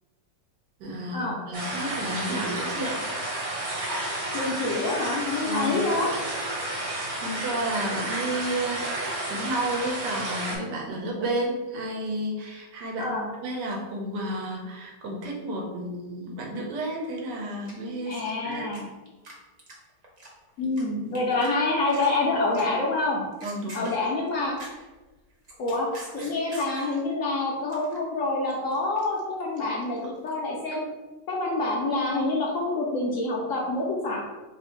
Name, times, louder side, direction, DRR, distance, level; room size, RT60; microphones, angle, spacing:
voice 1, 0.8-3.1 5.4-5.9 7.2-13.1 13.4-18.7 23.4-23.9, right 1 dB, 80° right, 0 dB, 1.4 m, -31 dB
sound 1, 1.5-10.6, right 1 dB, 60° right, 1.5 m, -31 dB
voice 2, 4.3-6.1 13.0-13.3 18.1-18.8 20.6-23.2 23.7-24.6 25.6-30.8 31.3-34.2, left 2 dB, 65° left, -3 dB, 0.8 m, -27 dB
sound 2, 17.7-18.8 19.1-19.3 19.6-20.8 21.1-21.5 21.8-22.2 22.5-22.8 23.2-24.9 25.3-27.0 27.4-28.0 28.3-30.4, right 1 dB, 40° right, 0.6 m, -45 dB
3.2 x 2.6 x 4.3 m, 1.2 s
omnidirectional pair, 1.8 m